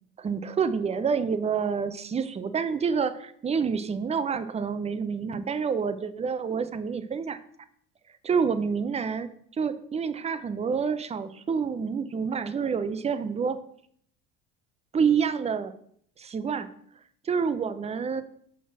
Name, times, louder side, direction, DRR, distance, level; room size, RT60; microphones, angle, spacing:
voice 1, 0.2-7.4 8.3-9.3 9.6-13.6 14.9-15.7 16.2-16.7 17.2-18.2, right 6 dB, 20° right, 12 dB, 0.6 m, -28 dB
5.9 x 4.2 x 5.8 m, 0.65 s
supercardioid pair, 85°, 31 cm